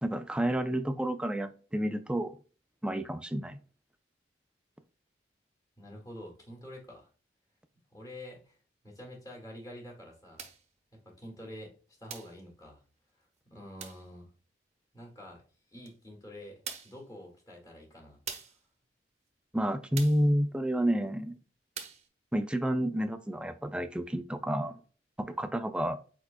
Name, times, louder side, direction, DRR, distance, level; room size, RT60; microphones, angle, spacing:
voice 1, 0.0-2.4 2.8-3.6 19.5-21.4 22.3-24.8 25.2-26.0, right 1 dB, 5° right, 8 dB, 0.4 m, -30 dB
voice 2, 5.8-7.1 7.9-8.6 8.8-10.4 11.1-11.7 12.0-12.8 13.5-14.3 14.9-15.4 15.7-18.2, left 1 dB, 20° left, -1 dB, 1.7 m, -47 dB
sound 1, 10.4-10.7 12.1-12.4 13.8-14.1 15.9-16.0 16.7-17.0 18.3-18.6 20.0-20.3 21.8-22.1, right 7 dB, 35° right, 0.8 m, -42 dB
4.7 x 4.5 x 2.2 m, 0.37 s
head